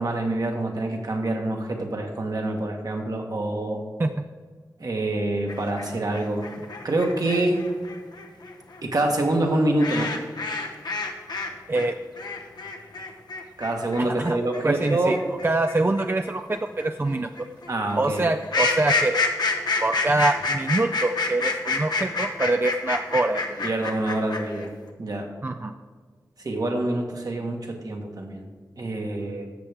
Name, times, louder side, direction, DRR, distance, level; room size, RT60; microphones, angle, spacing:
voice 1, 0.0-3.8 4.8-6.4 6.8-7.6 8.8-10.1 13.6-15.2 17.7-18.2 23.6-24.7 25.0-25.3 26.4-28.5 28.8-29.5, right 2 dB, 60° right, 2 dB, 1.4 m, -26 dB
sound 1, 5.5-11.5 11.7-24.7, left 3 dB, 80° left, 0.9 m, -28 dB
voice 2, 14.0-14.4 14.6-15.2 15.4-17.3 18.0-19.2 19.8-23.8 25.4-25.7, right 2 dB, 30° right, 7 dB, 0.4 m, -24 dB
12.5 x 6.9 x 3.5 m, 1.5 s
cardioid pair, 50°, 7 cm